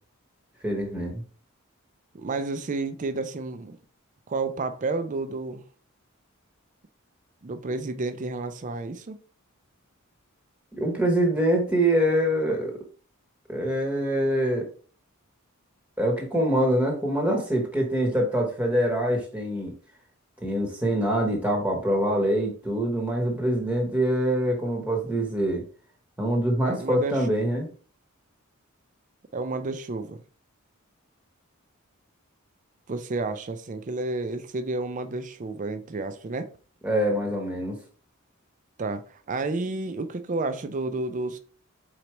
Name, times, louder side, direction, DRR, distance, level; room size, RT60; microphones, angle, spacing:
voice 1, 0.6-1.2 10.8-12.7 13.5-14.7 16.0-19.7 20.4-25.6 26.2-27.7 36.8-37.8, right 1 dB, 5° right, 0.9 m, -24 dB
voice 2, 2.1-3.8 4.3-5.6 7.4-9.2 26.6-27.6 29.3-30.2 32.9-36.5 38.8-41.4, right 3 dB, 35° right, 0.4 m, -31 dB
4.5 x 3.9 x 3.0 m
head